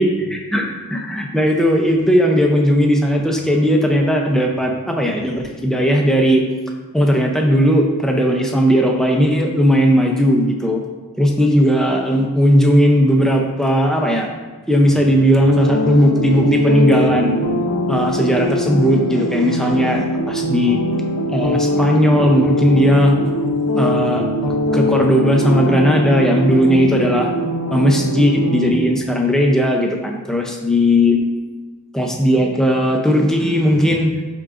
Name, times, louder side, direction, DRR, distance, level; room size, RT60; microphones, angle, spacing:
voice 1, 0.0-6.4 6.9-10.8 11.2-14.3 14.7-17.4 17.9-20.8 21.3-23.2 23.8-24.2 24.7-27.3 27.7-31.2 31.9-34.1, equal, ahead, 0 dB, 0.6 m, -16 dB
sound 1, 15.5-28.7, left 1 dB, 75° left, 0.7 m, -21 dB
10.5 x 3.8 x 2.5 m, 1.3 s
head